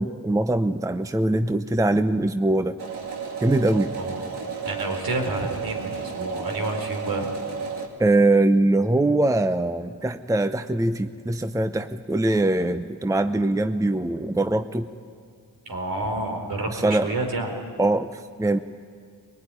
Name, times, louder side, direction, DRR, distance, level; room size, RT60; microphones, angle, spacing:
voice 1, 0.0-2.8 3.4-3.9 8.0-14.9 16.7-17.1 17.8-18.6, right 2 dB, 10° right, 10 dB, 0.7 m, -22 dB
sound 1, 2.8-7.9, right 5 dB, 80° right, 2.5 m, -32 dB
voice 2, 4.6-7.3 15.7-17.5, right 2 dB, 65° right, 3 dB, 4.3 m, -29 dB
22.0 x 19.5 x 9.8 m, 2.2 s
cardioid pair, 65°, 40 cm